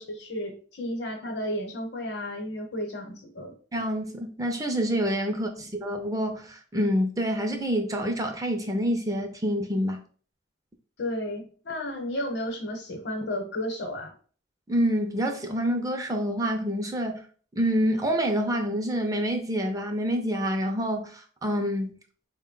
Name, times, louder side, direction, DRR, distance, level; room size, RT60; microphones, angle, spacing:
voice 1, 0.0-3.5 5.6-5.7 11.0-14.1, left 1 dB, 65° left, 0.9 m, -33 dB
voice 2, 3.7-10.0 14.7-17.2 17.6-22.0, equal, 20° right, 0.4 m, -27 dB
4.2 x 2.1 x 3.7 m
head